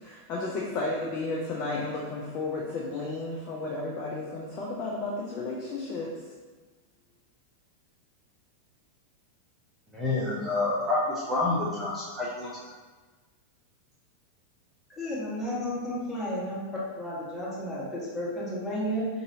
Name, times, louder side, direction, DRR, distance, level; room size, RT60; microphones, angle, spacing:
voice 1, 0.0-6.1, left 2 dB, 35° left, -3 dB, 0.5 m, -33 dB
voice 2, 9.9-12.5, left 2 dB, 10° right, -8 dB, 0.7 m, -28 dB
voice 3, 14.9-16.6 16.9-19.1, equal, 10° left, -9 dB, 1.5 m, -32 dB
4.9 x 2.7 x 2.7 m, 1.3 s
figure-of-eight pair, 90°, 0 cm